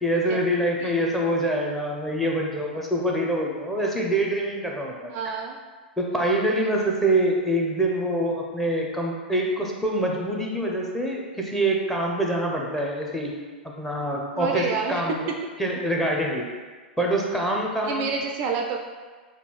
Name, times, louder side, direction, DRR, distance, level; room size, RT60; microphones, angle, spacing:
voice 1, 0.0-5.1 6.0-13.3 13.6-15.3 15.6-16.5 17.0-18.0, right 1 dB, 5° left, -1 dB, 0.6 m, -25 dB
voice 2, 5.1-5.6 6.8-6.9 14.3-15.0 17.8-18.8, right 5 dB, 35° right, 2 dB, 0.3 m, -28 dB
6.7 x 2.4 x 3.1 m, 1.5 s
figure-of-eight pair, 100°, 6 cm